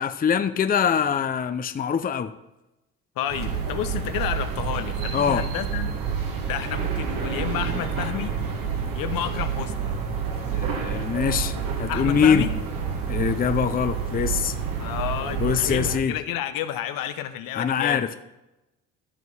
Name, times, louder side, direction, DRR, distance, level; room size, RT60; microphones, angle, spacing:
voice 1, 0.0-2.3 5.1-5.5 10.5-12.5 13.1-14.6 15.4-16.1 17.6-18.2, left 7 dB, 25° left, 10 dB, 0.6 m, -23 dB
voice 2, 3.2-5.9 6.5-8.3 8.9-9.9 11.9-12.5 14.8-18.2, left 11 dB, 70° left, 10 dB, 0.9 m, -30 dB
sound 1, 3.3-16.0, right 6 dB, 65° right, 1.7 m, -28 dB
13.5 x 4.6 x 5.5 m, 0.96 s
supercardioid pair, 70°, 36 cm